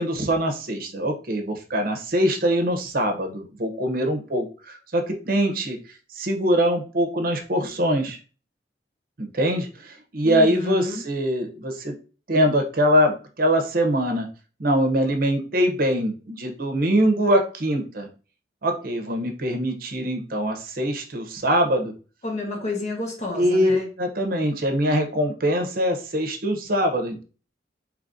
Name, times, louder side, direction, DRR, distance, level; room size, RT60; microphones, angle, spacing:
voice 1, 0.0-5.8 6.1-8.2 9.2-11.9 12.3-14.3 14.6-18.1 18.6-21.9 23.4-27.2, equal, 55° right, 5 dB, 0.8 m, -23 dB
voice 2, 10.2-11.0 22.2-23.9, left 2 dB, 40° left, 0 dB, 1.3 m, -29 dB
4.8 x 3.1 x 2.6 m, 0.36 s
head